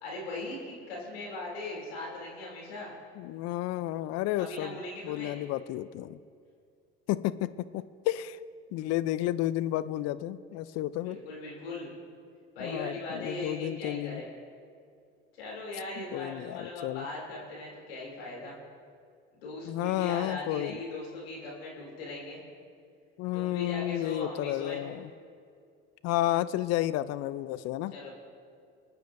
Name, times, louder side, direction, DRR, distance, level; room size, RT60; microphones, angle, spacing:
voice 1, 0.0-2.9 4.4-5.4 11.0-11.9 12.5-14.3 15.4-18.6 19.3-22.4 23.3-24.8 27.9-28.1, left 2 dB, 85° left, -3 dB, 3.0 m, -39 dB
voice 2, 3.2-6.2 7.1-8.4 8.7-11.2 12.6-14.2 16.0-17.1 19.6-20.8 23.2-25.1 26.0-28.0, left 14 dB, 60° left, 15 dB, 0.5 m, -32 dB
26.0 x 9.0 x 2.6 m, 2.4 s
hypercardioid pair, 65°, 29 cm